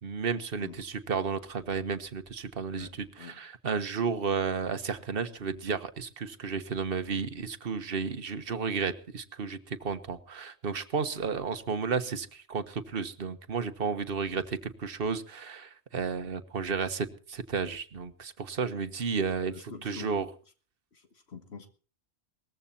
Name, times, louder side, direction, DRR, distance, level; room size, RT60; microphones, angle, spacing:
voice 1, 0.0-20.3, right 5 dB, 60° right, 10 dB, 1.4 m, -32 dB
voice 2, 2.7-3.4 19.5-20.1 20.9-21.7, left 5 dB, 70° left, 8 dB, 1.8 m, -45 dB
20.0 x 14.5 x 4.2 m, 0.38 s
omnidirectional pair, 1.1 m